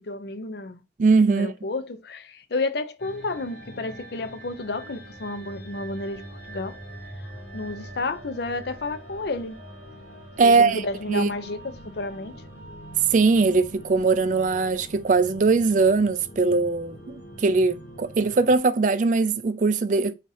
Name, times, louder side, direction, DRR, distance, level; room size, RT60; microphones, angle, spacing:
voice 1, 0.0-0.8 1.3-6.2 6.5-6.8 7.5-9.6 10.4-12.4, left 3 dB, 55° left, 0.5 m, -31 dB
voice 2, 1.0-1.5 10.4-10.8 11.1-11.3 13.1-20.1, right 4 dB, 40° right, 0.3 m, -21 dB
sound 1, 3.0-18.6, right 1 dB, 85° left, 2.0 m, -43 dB
4.0 x 2.7 x 4.7 m
head